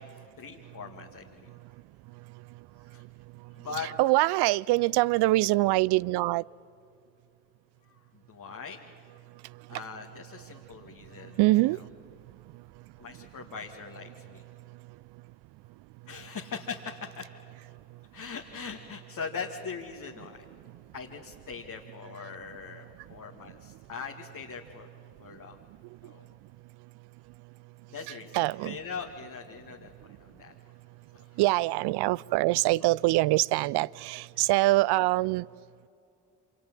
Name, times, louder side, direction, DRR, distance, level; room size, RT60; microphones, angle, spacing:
voice 1, 0.4-1.5 2.9-3.0 3.5-3.9 8.1-8.8 9.7-11.4 13.0-14.4 16.1-17.3 18.1-20.4 20.9-24.9 25.2-25.6 26.0-26.2 27.9-30.6 31.1-31.4 34.4-34.5, left 5 dB, 45° left, 0 dB, 2.3 m, -41 dB
voice 2, 3.8-6.5 9.4-9.8 11.2-11.8 12.5-12.6 13.2-13.3 22.2-22.3 26.0-26.1 28.1-28.8 31.4-35.5, right 19 dB, 65° right, 24 dB, 0.6 m, -25 dB
28.0 x 27.0 x 7.6 m, 2.5 s
hypercardioid pair, 45°, 42 cm